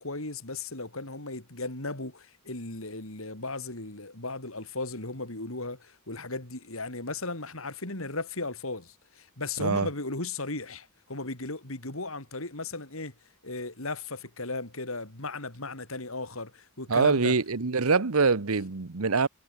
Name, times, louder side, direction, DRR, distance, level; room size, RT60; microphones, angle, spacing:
voice 1, 0.0-13.1 13.4-17.3, left 3 dB, 70° left, 4.2 m, -36 dB
voice 2, 16.9-19.3, right 4 dB, 90° right, 1.1 m, -24 dB
head